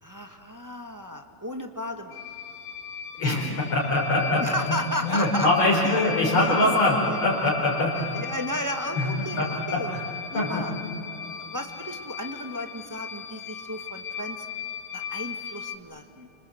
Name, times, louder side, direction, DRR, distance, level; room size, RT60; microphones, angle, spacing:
voice 1, 0.0-2.2 3.2-3.4 4.4-6.0 6.4-6.5 7.1-7.2 8.0-9.9 10.3-10.7 11.4-14.4 14.9-16.3, left 1 dB, 10° right, 4 dB, 1.0 m, -34 dB
sound 1, 2.1-15.8, left 6 dB, 90° left, 2.0 m, -37 dB
voice 2, 3.2-4.4 5.0-8.2 8.9-9.5 9.7-10.0 10.3-10.6, left 2 dB, 65° left, -6 dB, 5.0 m, -23 dB
29.0 x 26.0 x 7.8 m, 2.8 s
omnidirectional pair, 2.4 m